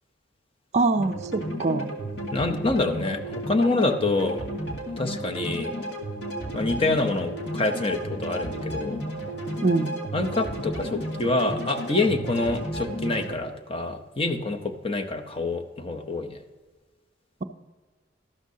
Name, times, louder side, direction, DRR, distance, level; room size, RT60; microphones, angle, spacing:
voice 1, 0.7-1.9 9.6-9.9, right 3 dB, 35° right, 8 dB, 0.4 m, -23 dB
sound 1, 1.0-13.3, equal, 60° left, 2.1 m, -33 dB
voice 2, 2.3-4.4 5.0-5.7 6.5-9.0 10.1-16.4, left 2 dB, 30° left, 6 dB, 0.8 m, -26 dB
13.0 x 12.5 x 2.8 m, 1.4 s
head